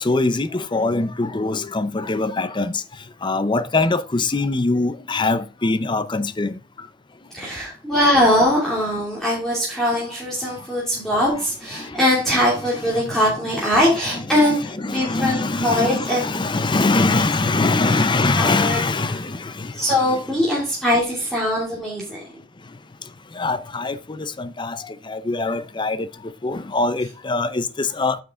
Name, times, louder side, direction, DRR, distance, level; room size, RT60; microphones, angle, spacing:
voice 1, 0.0-2.8 3.2-6.6 14.4-14.5 14.8-19.7 23.4-26.1 26.4-28.2, left 3 dB, 25° left, 0.6 m, -22 dB
voice 2, 7.3-16.5 16.9-17.2 17.8-18.0 18.4-19.2 19.7-22.2, left 1 dB, ahead, 2.8 m, -21 dB
9.3 x 6.4 x 3.8 m
head